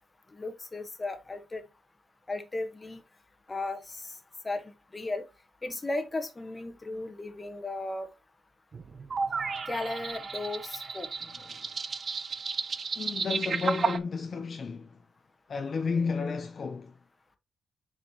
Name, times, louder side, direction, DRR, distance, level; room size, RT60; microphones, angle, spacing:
voice 1, 0.3-1.6 2.3-3.0 3.5-3.8 4.4-5.2 5.6-8.1 9.7-11.1, left 2 dB, 25° left, 1.2 m, -35 dB
sound 1, 8.7-14.0, right 5 dB, 45° right, 0.6 m, -33 dB
voice 2, 11.2-11.7 12.9-15.0 15.5-16.9, left 4 dB, 45° left, 0.6 m, -32 dB
7.0 x 5.0 x 2.9 m
cardioid pair, 125°, 0 cm